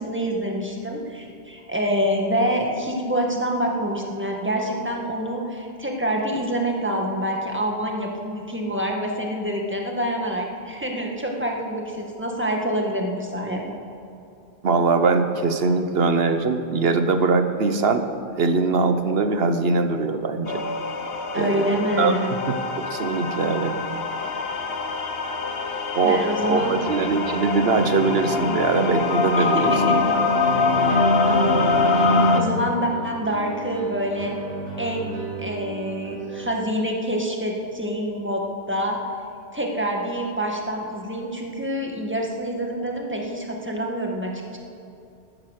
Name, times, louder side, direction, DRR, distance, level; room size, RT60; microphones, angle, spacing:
voice 1, 0.0-13.8 21.3-22.4 26.0-26.8 29.4-30.2 30.8-34.4 34.8-39.0 39.5-44.6, equal, 10° right, 0 dB, 1.9 m, -27 dB
voice 2, 14.6-18.0 18.4-20.6 21.3-22.2 22.5-22.6 22.9-23.7 25.9-26.2 26.5-29.7, right 4 dB, 75° right, 8 dB, 1.2 m, -21 dB
sound 1, 20.5-32.4, left 3 dB, 75° left, 1.3 m, -23 dB
sound 2, 25.9-36.4, right 4 dB, 35° right, 3.7 m, -35 dB
15.0 x 12.0 x 6.6 m, 2.6 s
omnidirectional pair, 1.0 m